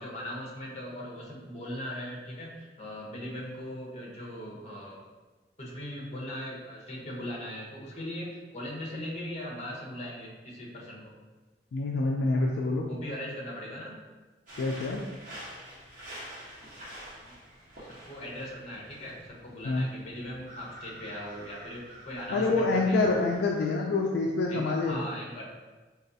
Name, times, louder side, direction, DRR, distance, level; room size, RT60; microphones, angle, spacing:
voice 1, 0.0-5.0 5.6-11.1 12.9-14.0 17.0-17.4 17.8-23.1 24.5-25.4, equal, 40° left, -3 dB, 0.8 m, -39 dB
voice 2, 11.7-12.9 14.6-15.0 19.6-19.9 22.3-25.1, left 3 dB, 65° left, 0 dB, 0.3 m, -26 dB
sound 1, 14.5-23.7, equal, 50° right, 1.0 m, -47 dB
4.1 x 2.3 x 2.6 m, 1.3 s
head